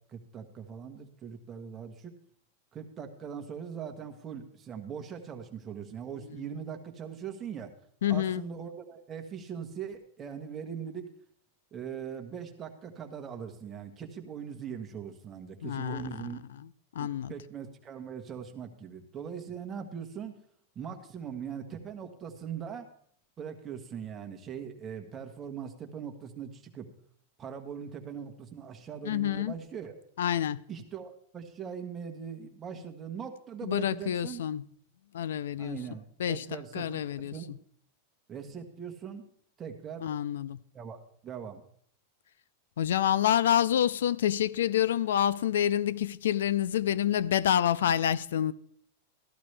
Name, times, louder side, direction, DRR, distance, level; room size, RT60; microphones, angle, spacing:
voice 1, 0.1-2.1 2.7-7.7 8.1-11.1 11.7-16.4 17.0-20.4 20.7-22.9 23.4-26.9 27.4-30.0 30.7-34.4 35.6-37.5 38.3-39.2 39.6-40.0 40.7-41.6, right 7 dB, 20° right, 1.3 m, -41 dB
voice 2, 8.0-8.4 15.6-16.0 16.9-17.3 29.0-29.5 30.2-30.6 33.6-34.6 35.1-35.8 36.2-36.4 36.7-37.3 40.0-40.6 42.8-48.5, left 10 dB, 85° left, 0.4 m, -27 dB
14.0 x 12.0 x 3.3 m
supercardioid pair, 155°, 0 cm